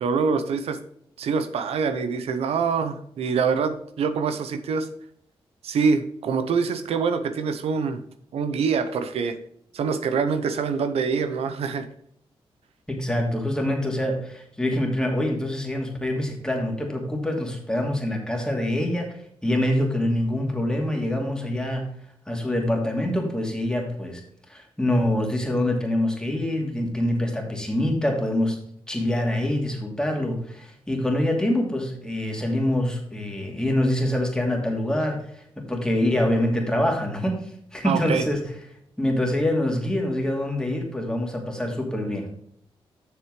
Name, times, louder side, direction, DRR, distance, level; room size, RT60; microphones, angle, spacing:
voice 1, 0.0-0.8 1.2-4.9 5.6-8.0 8.3-9.4 9.7-11.9 37.8-38.2, right 5 dB, 85° right, 9 dB, 0.8 m, -25 dB
voice 2, 12.9-21.9 22.3-24.2 24.5-28.6 28.9-37.5 37.7-38.5 39.0-42.3, left 1 dB, 5° left, 1 dB, 2.6 m, -25 dB
7.7 x 6.6 x 4.8 m, 0.67 s
cardioid pair, 70°, 10 cm